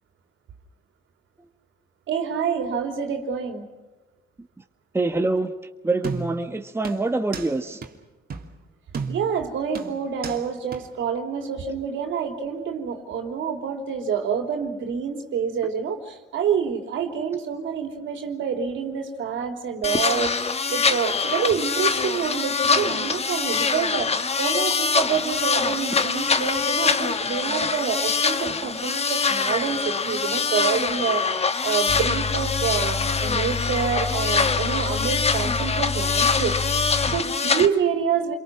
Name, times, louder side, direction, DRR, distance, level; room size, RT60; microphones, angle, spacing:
voice 1, 2.1-3.6 9.1-38.4, right 7 dB, 75° right, 4 dB, 3.5 m, -27 dB
voice 2, 4.9-5.5 5.8-7.8, right 2 dB, 10° right, 5 dB, 1.5 m, -25 dB
sound 1, 6.0-6.5 6.8-7.5 7.8-7.9 8.3-8.5 8.9-9.4 9.7-10.4 10.7-10.8, right 5 dB, 50° right, 2.8 m, -33 dB
sound 2, 19.8-37.7, left 5 dB, 30° left, 1.4 m, -24 dB
sound 3, 31.9-37.2, left 4 dB, 80° left, 2.4 m, -30 dB
28.5 x 23.5 x 6.0 m, 1.1 s
cardioid pair, 90°, 20 cm